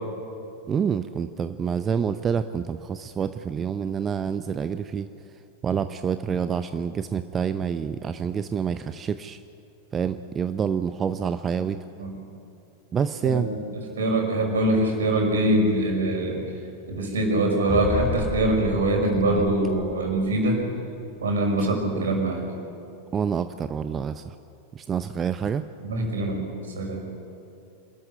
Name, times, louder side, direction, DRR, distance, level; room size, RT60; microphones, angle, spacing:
voice 1, 0.7-5.1 5.6-9.4 9.9-11.8 12.9-13.5 19.1-19.5 21.6-22.0 23.1-24.3 24.7-25.7, right 7 dB, 25° right, 11 dB, 0.7 m, -27 dB
voice 2, 13.2-16.4 16.9-20.6 21.2-22.4 25.8-26.5 26.8-27.0, right 1 dB, 65° right, 2 dB, 5.7 m, -23 dB
sound 1, 17.7-20.4, left 1 dB, 5° left, 6.0 m, -32 dB
27.0 x 13.5 x 10.0 m, 2.7 s
figure-of-eight pair, 90°, 0 cm